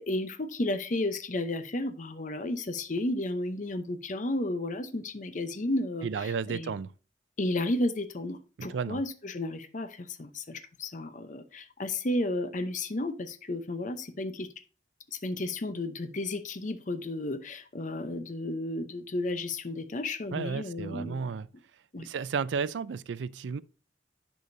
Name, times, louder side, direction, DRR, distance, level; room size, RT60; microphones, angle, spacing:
voice 1, 0.0-6.7 7.4-14.5 15.1-21.2 21.9-22.1, left 2 dB, 45° left, 0.7 m, -33 dB
voice 2, 6.0-6.9 8.6-9.0 20.3-21.5 22.0-23.6, right 5 dB, 90° right, 0.4 m, -33 dB
10.5 x 5.0 x 2.7 m
head